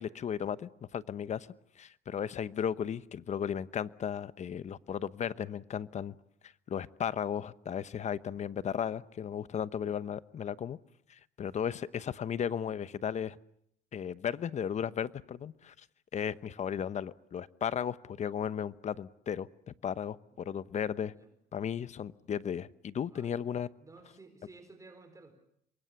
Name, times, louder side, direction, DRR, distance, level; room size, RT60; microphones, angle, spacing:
voice 1, 0.0-1.5 1.8-6.1 6.7-10.8 11.1-13.4 13.9-15.9 16.1-19.5 19.8-21.1 21.5-23.7, left 8 dB, 45° left, 16 dB, 1.0 m, -35 dB
voice 2, 23.8-25.3, right 3 dB, 20° right, 7 dB, 4.5 m, -54 dB
28.0 x 23.0 x 8.1 m, 0.72 s
cardioid pair, 110°, 17 cm